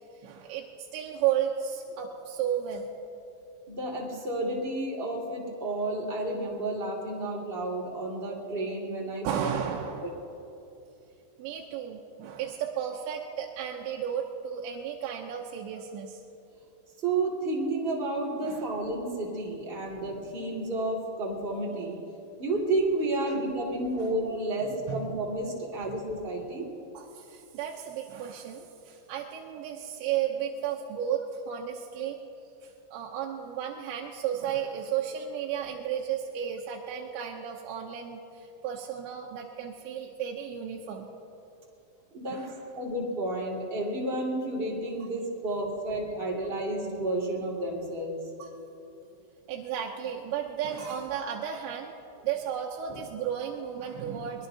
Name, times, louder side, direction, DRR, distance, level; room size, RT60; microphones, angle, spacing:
voice 1, 0.2-2.9 9.2-10.1 11.4-16.2 18.4-18.7 23.3-23.4 24.0-24.1 24.6-25.1 25.8-26.0 26.9-32.2 32.6-41.1 42.3-42.6 48.4-48.5 49.5-54.5, right 9 dB, 80° right, 0 dB, 3.0 m, -33 dB
voice 2, 3.7-9.5 10.0-10.1 17.0-22.0 22.4-26.7 42.1-42.4 42.7-48.2, right 2 dB, 25° right, -3 dB, 1.3 m, -31 dB
23.0 x 21.0 x 2.8 m, 2.8 s
omnidirectional pair, 5.3 m